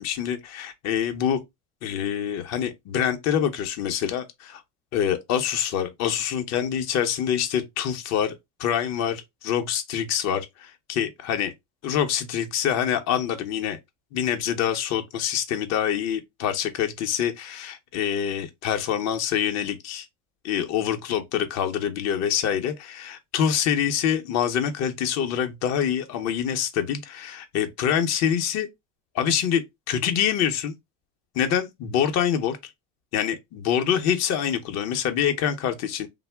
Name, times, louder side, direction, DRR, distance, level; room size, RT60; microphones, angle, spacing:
voice 1, 0.0-1.4 1.8-4.6 4.9-8.3 8.6-11.5 11.8-13.8 14.1-20.0 20.4-28.7 29.1-30.7 31.3-32.6 33.1-36.1, left 9 dB, 50° left, 0.6 m, -25 dB
2.9 x 2.0 x 3.3 m
supercardioid pair, 120°, 35 cm